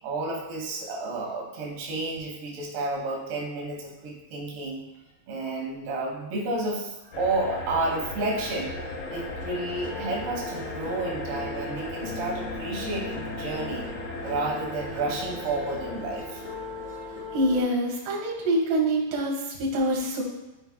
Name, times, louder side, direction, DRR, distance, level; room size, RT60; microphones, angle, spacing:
voice 1, 0.0-4.8 5.3-8.8 9.1-13.9 14.2-16.4, right 2 dB, 90° right, -3 dB, 3.3 m, -31 dB
sound 1, 7.1-17.4, left 2 dB, 75° left, 1.4 m, -38 dB
sound 2, 8.8-17.6, left 2 dB, 20° left, 1.4 m, -38 dB
voice 2, 17.3-20.2, right 1 dB, 65° right, -4 dB, 3.0 m, -25 dB
12.0 x 4.6 x 2.2 m, 1.0 s
omnidirectional pair, 4.5 m